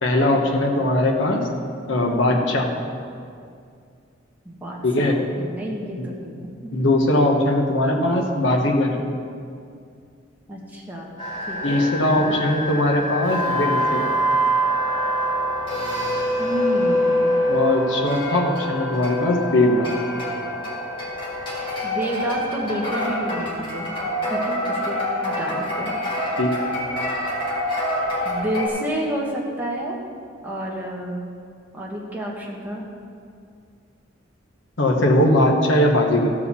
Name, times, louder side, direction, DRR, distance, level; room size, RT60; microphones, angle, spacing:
voice 1, 0.0-1.4 1.9-2.7 4.8-5.2 6.7-8.9 11.6-14.0 17.5-19.9 26.4-26.5 34.8-36.3, left 1 dB, 70° left, 1 dB, 1.1 m, -20 dB
voice 2, 4.4-6.7 10.5-11.1 11.5-12.4 16.4-17.4 21.8-23.9 24.3-25.0 25.2-25.9 28.2-30.0 30.4-31.3 31.7-32.8, right 1 dB, 10° right, -3 dB, 1.5 m, -30 dB
sound 1, 11.2-28.7, equal, 25° left, 2.2 m, -25 dB
14.5 x 4.9 x 6.9 m, 2.3 s
head